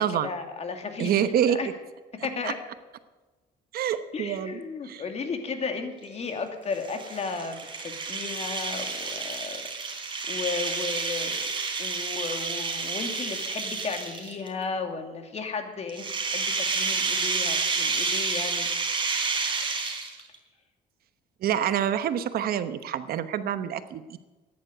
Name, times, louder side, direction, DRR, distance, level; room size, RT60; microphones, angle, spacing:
voice 1, 0.0-1.1 1.5-1.7 2.2-2.5 4.1-9.7 10.3-11.5 11.8-18.7, left 4 dB, 40° left, 5 dB, 2.4 m, -34 dB
voice 2, 1.0-1.6 2.4-2.5 3.7-5.0 21.4-24.2, right 9 dB, 65° right, 12 dB, 1.0 m, -27 dB
sound 1, 6.7-14.5 15.9-20.4, right 4 dB, 30° right, 3.8 m, -30 dB
14.0 x 10.5 x 8.0 m, 1.2 s
cardioid pair, 110°, 17 cm